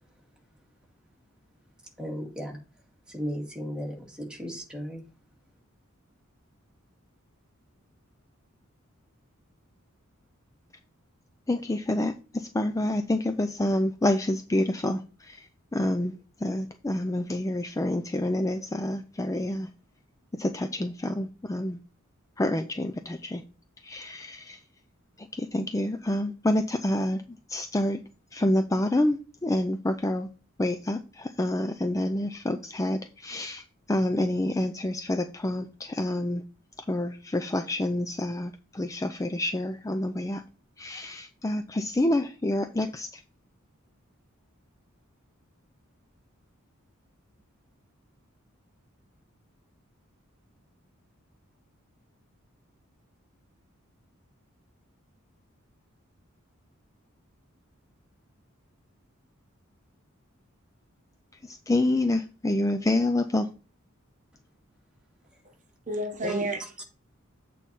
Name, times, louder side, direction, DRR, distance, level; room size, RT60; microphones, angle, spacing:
voice 1, 2.0-2.6 3.1-5.0 66.2-66.7, equal, 5° right, 2.1 m, -35 dB
voice 2, 11.5-19.7 20.3-21.8 22.4-23.4 23.8-24.6 25.2-27.2 27.5-28.0 28.3-30.3 30.6-36.4 36.8-40.4 40.8-43.2 61.4-63.5, left 1 dB, 15° left, 0.4 m, -28 dB
voice 3, 65.9-66.8, right 1 dB, 35° right, 1.1 m, -31 dB
8.3 x 4.2 x 5.4 m
head